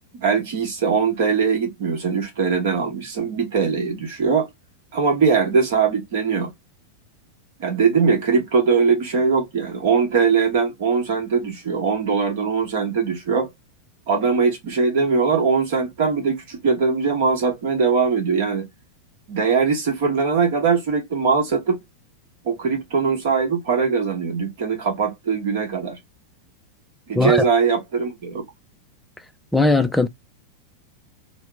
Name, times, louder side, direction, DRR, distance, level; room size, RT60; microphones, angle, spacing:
voice 1, 0.1-4.5 4.9-6.5 7.6-13.5 14.1-18.7 19.3-21.8 22.4-26.0 27.1-28.4, right 5 dB, 50° right, 1.1 m, -21 dB
voice 2, 29.5-30.1, left 2 dB, 5° left, 0.4 m, -18 dB
2.7 x 2.1 x 3.4 m
figure-of-eight pair, 90°, 0 cm